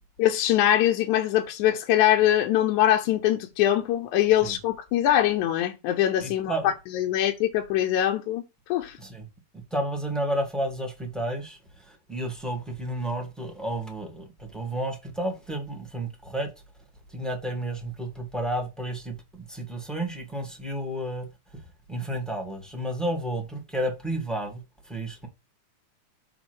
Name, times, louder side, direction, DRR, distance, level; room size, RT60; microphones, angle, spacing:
voice 1, 0.2-9.0, left 12 dB, 75° left, 2.1 m, -23 dB
voice 2, 6.2-6.7 9.0-9.2 9.7-11.6 11.9-16.5 17.1-19.1 19.5-21.3 21.9-24.6 24.9-25.3, right 1 dB, ahead, 0.9 m, -31 dB
7.0 x 3.6 x 6.2 m
omnidirectional pair, 3.6 m